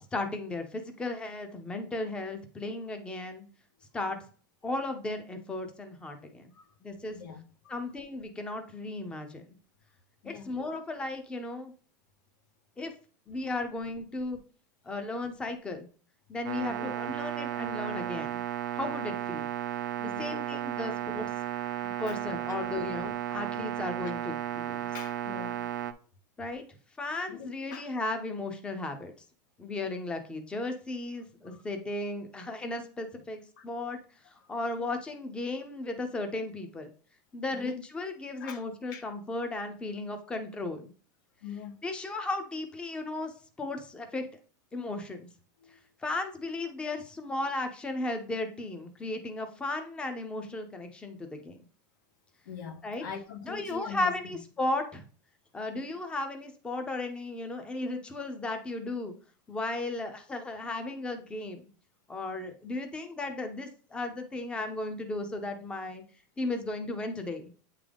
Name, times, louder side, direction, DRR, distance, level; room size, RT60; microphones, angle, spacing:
voice 1, 0.1-3.5 3.9-4.2 4.6-6.5 6.8-7.2 7.7-9.4 10.2-11.7 12.8-12.9 13.3-14.4 14.8-15.9 16.3-18.4 18.7-19.4 20.0-21.3 21.8-24.9 26.4-26.6 27.0-29.1 29.6-34.0 34.3-36.9 37.3-40.9 41.8-44.3 44.7-45.3 45.7-51.6 52.8-53.0 53.4-55.0 55.5-59.1 59.5-61.7 62.1-66.0 66.4-67.5, left 2 dB, 10° left, 0.7 m, -35 dB
voice 2, 7.1-7.8 10.2-10.6 16.7-16.9 20.0-20.5 20.9-21.0 22.1-22.2 24.9-25.7 27.3-27.9 31.4-31.6 33.6-33.7 34.4-34.5 37.5-37.8 38.4-38.6 38.9-39.1 41.4-41.8 45.6-45.9 52.4-54.2, left 7 dB, 90° left, 0.9 m, -44 dB
sound 1, 16.4-25.9, right 12 dB, 85° right, 0.5 m, -34 dB
8.1 x 3.8 x 3.5 m
supercardioid pair, 155°, 10 cm